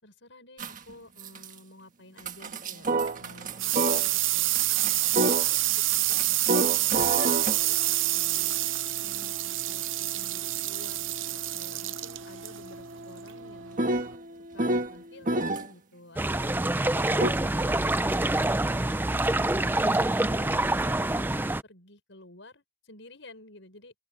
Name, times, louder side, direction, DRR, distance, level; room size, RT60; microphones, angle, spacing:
voice 1, 0.0-2.9 3.2-7.1 7.6-8.6 9.0-13.8 14.5-18.7 21.6-23.9, left 1 dB, 70° left, 5.8 m, -51 dB
sound 1, 0.6-0.9 1.2-1.5 2.2-4.2 4.6-15.7 17.2-17.3, right 2 dB, 40° right, 1.6 m, -31 dB
sound 2, 2.9-14.2, right 16 dB, 75° right, 0.7 m, -28 dB
sound 3, 16.2-21.6, right 2 dB, 10° right, 0.4 m, -26 dB
open air
head